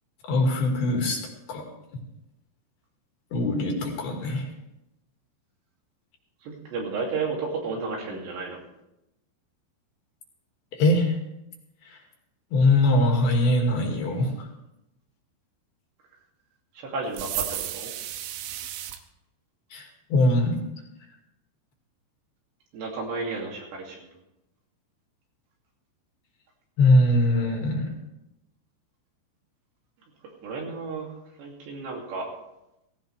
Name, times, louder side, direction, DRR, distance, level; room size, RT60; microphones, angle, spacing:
voice 1, 0.2-1.2 1.5-1.7 3.3-4.5 10.7-11.2 11.8-12.0 12.5-14.5 19.7-20.6 26.8-27.9, left 1 dB, 60° left, 1 dB, 3.9 m, -22 dB
voice 2, 6.4-8.6 16.8-17.9 22.7-24.1 30.4-31.1 31.4-32.3, right 4 dB, 70° right, -1 dB, 4.9 m, -32 dB
sound 1, 17.1-19.0, right 12 dB, 90° right, 3.2 m, -33 dB
17.5 x 16.5 x 3.4 m, 0.87 s
omnidirectional pair, 5.2 m